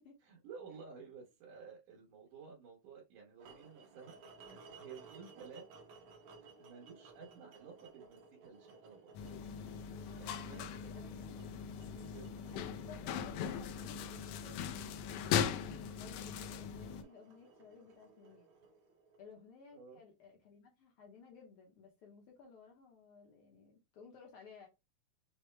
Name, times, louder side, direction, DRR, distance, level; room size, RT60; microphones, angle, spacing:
voice 1, 0.2-5.7 6.4-9.1 10.2-10.8 12.0-12.2 19.7-20.0, right 5 dB, 90° right, 2.7 m, -53 dB
sound 1, 3.4-19.5, right 4 dB, 70° right, 1.3 m, -59 dB
sound 2, 9.1-17.0, left 8 dB, 80° left, 1.6 m, -39 dB
voice 2, 10.0-11.4 12.5-18.5 19.2-24.7, left 5 dB, 65° left, 1.4 m, -57 dB
6.2 x 2.1 x 3.2 m
omnidirectional pair, 3.5 m